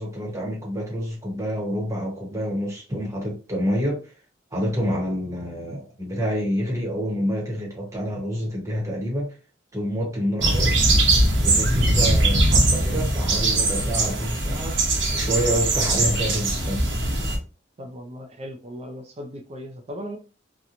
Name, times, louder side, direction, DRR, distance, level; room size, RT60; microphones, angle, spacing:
voice 1, 0.0-4.1 4.5-9.4 9.7-10.9 11.4-14.9 15.1-16.8, equal, 15° right, 0.9 m, -28 dB
sound 1, 10.4-17.4, right 2 dB, 70° right, 0.8 m, -21 dB
voice 2, 17.8-20.2, equal, 35° right, 0.4 m, -37 dB
2.8 x 2.1 x 2.5 m
head